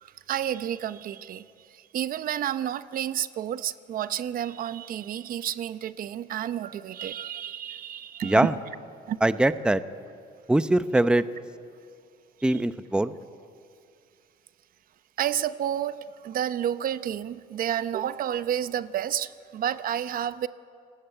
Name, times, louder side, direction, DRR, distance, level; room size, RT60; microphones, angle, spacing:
voice 1, 0.0-8.5 9.1-9.2 12.5-12.6 15.2-20.5, right 10 dB, 55° right, 14 dB, 0.8 m, -30 dB
voice 2, 8.2-8.5 9.2-9.8 10.5-11.2 12.4-13.1, right 1 dB, 5° right, 12 dB, 0.8 m, -22 dB
29.0 x 19.0 x 9.0 m, 2.3 s
cardioid pair, 110°, 17 cm